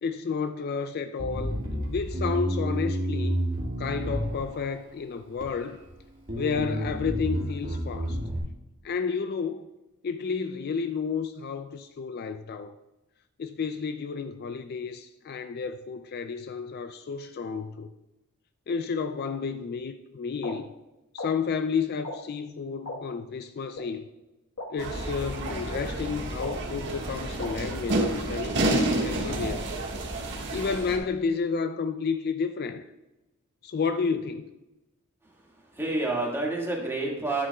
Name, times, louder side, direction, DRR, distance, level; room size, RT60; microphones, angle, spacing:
voice 1, 0.0-3.4 3.8-5.8 6.4-8.2 8.8-9.7 10.0-12.7 13.4-17.9 18.7-20.7 21.1-24.1 24.7-29.6 30.5-32.8 33.6-34.4, left 5 dB, 45° left, 0.3 m, -31 dB
Bass guitar, 1.2-4.8 5.4-5.9 6.3-8.4, equal, 40° right, 1.7 m, -30 dB
sound 1, 20.4-20.5 21.2-21.3 22.0-22.2 22.8-23.0 23.7-23.8 24.6-24.7 25.4-25.5 26.4-26.5 27.4-27.5, left 2 dB, 80° left, 1.4 m, -35 dB
sound 2, 24.8-31.0, right 1 dB, 55° right, 1.6 m, -29 dB
voice 2, 35.2-37.5, right 2 dB, 10° right, 1.8 m, -29 dB
10.5 x 9.6 x 2.3 m
head